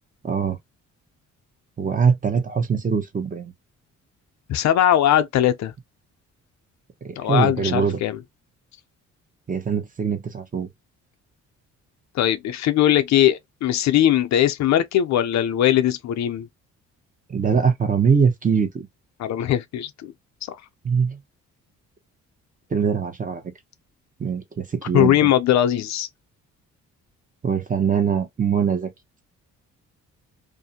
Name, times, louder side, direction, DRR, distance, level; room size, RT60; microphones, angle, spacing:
voice 1, 0.2-0.6 1.8-3.5 7.0-8.0 9.5-10.7 17.3-18.9 20.8-21.2 22.7-23.4 24.2-25.3 27.4-28.9, right 6 dB, 25° right, 0.8 m, -22 dB
voice 2, 4.5-5.7 7.2-8.2 12.1-16.5 19.2-20.1 20.5-20.6 24.9-26.1, left 11 dB, 65° left, 0.5 m, -20 dB
2.5 x 2.1 x 2.7 m
cardioid pair, 90°, 30 cm